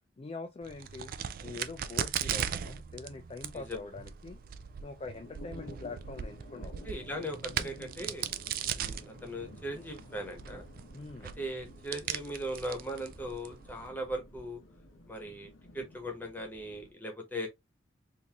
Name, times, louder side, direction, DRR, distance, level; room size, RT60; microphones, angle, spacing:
voice 1, 0.2-1.1 1.4-4.4 4.8-6.7 10.9-11.3, left 3 dB, 30° left, 0.3 m, -44 dB
Crack, 0.6-13.9, right 9 dB, 50° right, 0.3 m, -39 dB
sound 1, 3.1-16.9, left 1 dB, 90° left, 0.8 m, -52 dB
voice 2, 6.8-8.3 8.8-10.6 11.4-14.6 15.1-17.5, equal, 10° left, 1.0 m, -39 dB
3.7 x 2.6 x 2.9 m
head